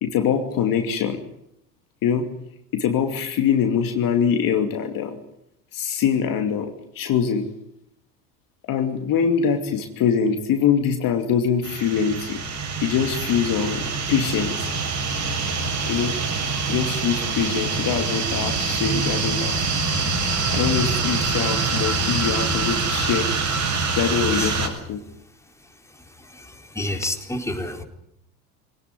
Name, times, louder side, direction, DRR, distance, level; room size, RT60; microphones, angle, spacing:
voice 1, 0.0-1.2 2.0-2.3 2.7-5.2 5.7-7.5 8.7-12.4 12.8-14.8 15.9-16.2 16.7-19.7 20.5-23.3 24.0-25.0, left 7 dB, 45° left, 5 dB, 2.7 m, -23 dB
sound 1, 11.6-24.7, right 4 dB, 40° right, 7.0 m, -25 dB
voice 2, 26.2-27.8, left 1 dB, 5° left, 3 dB, 4.4 m, -30 dB
26.0 x 18.5 x 9.6 m, 0.79 s
hypercardioid pair, 75°, 47 cm